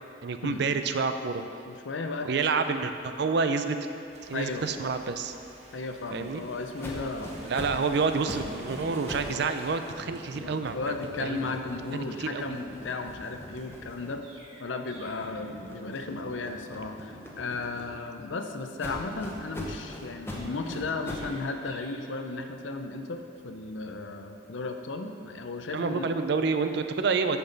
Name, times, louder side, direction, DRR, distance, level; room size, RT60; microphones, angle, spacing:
voice 1, 0.2-1.5 2.2-3.8 4.3-5.3 6.1-6.4 7.4-10.8 11.2-11.4 11.9-12.5 25.7-27.4, right 4 dB, 60° right, 8 dB, 0.4 m, -28 dB
voice 2, 1.7-2.4 4.3-4.7 5.7-7.3 10.4-14.2 14.6-26.1, left 3 dB, 80° left, 6 dB, 0.6 m, -35 dB
sound 1, 4.1-9.9, right 1 dB, 35° right, 1.0 m, -50 dB
sound 2, 6.8-9.4 9.7-14.5 14.9-18.2 18.8-21.4, left 1 dB, 15° left, 0.9 m, -42 dB
Chirp tweet, 13.6-15.4 20.3-21.9, right 1 dB, 85° right, 1.8 m, -53 dB
9.2 x 6.9 x 4.0 m, 2.6 s
head